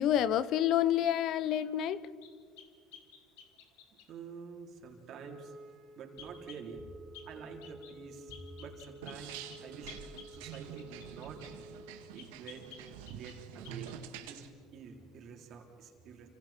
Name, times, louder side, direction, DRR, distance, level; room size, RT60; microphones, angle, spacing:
voice 1, 0.0-2.0, left 11 dB, 60° left, 17 dB, 0.8 m, -28 dB
sound 1, 2.2-4.1 6.2-6.7 7.1-7.3 7.6-8.0 8.3-11.6 12.2-13.4 13.6-14.0, left 8 dB, 85° left, 2.7 m, -53 dB
voice 2, 4.1-5.5 6.0-6.9 7.2-10.0 10.3-11.4 12.1-12.7 13.1-13.9 14.2-14.4 14.7-16.3, right 5 dB, 55° right, 1 dB, 4.0 m, -48 dB
Wind instrument woodwind instrument, 5.1-12.2, right 1 dB, 25° right, 3.3 m, -52 dB
sound 2, 9.0-14.5, right 9 dB, 85° right, 1.8 m, -47 dB
30.0 x 26.5 x 4.5 m, 2.2 s
supercardioid pair, 95°, 0 cm